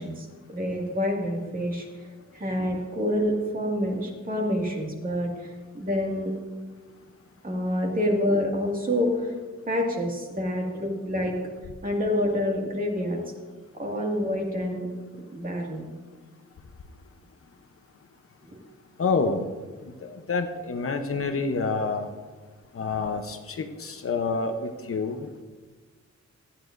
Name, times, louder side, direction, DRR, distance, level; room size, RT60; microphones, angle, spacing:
voice 1, 0.0-1.9 2.3-5.3 5.7-6.3 7.4-9.3 9.7-11.4 11.8-13.2 13.7-14.9 15.3-15.9 18.4-18.6, left 1 dB, 30° right, 0 dB, 2.1 m, -27 dB
voice 2, 19.0-19.5 19.8-22.1 22.7-25.3, left 4 dB, 50° left, 6 dB, 0.8 m, -28 dB
17.5 x 13.0 x 2.6 m, 1.4 s
wide cardioid pair, 170°, 29 cm